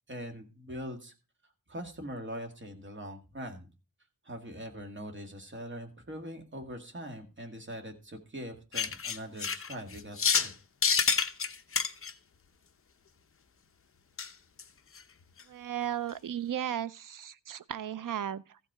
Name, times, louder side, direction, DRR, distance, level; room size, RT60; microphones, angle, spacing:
voice 1, 0.1-1.1 1.7-3.7 4.2-10.5, equal, 35° right, 2.1 m, -42 dB
sound 1, 8.7-10.5 10.8-12.1 14.2-14.3 14.6-14.7 15.0-15.1 15.4-15.5, left 6 dB, 40° left, 0.8 m, -28 dB
voice 2, 15.5-18.6, right 10 dB, 65° right, 0.6 m, -35 dB
14.5 x 5.4 x 4.9 m
wide cardioid pair, 125°, 35 cm